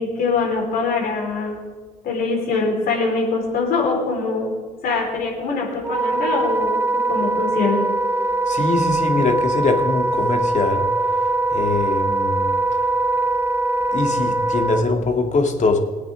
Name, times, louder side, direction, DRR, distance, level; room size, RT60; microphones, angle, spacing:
voice 1, 0.0-1.6 2.0-4.5 4.8-7.8, left 4 dB, 65° left, -1 dB, 4.2 m, -23 dB
Wind instrument woodwind instrument, 5.8-14.8, right 2 dB, 15° right, 0.6 m, -21 dB
voice 2, 8.5-10.9 11.5-12.5 13.9-15.8, left 3 dB, 45° left, 4 dB, 2.2 m, -22 dB
20.5 x 9.0 x 3.7 m, 1.4 s
hypercardioid pair, 60°, 17 cm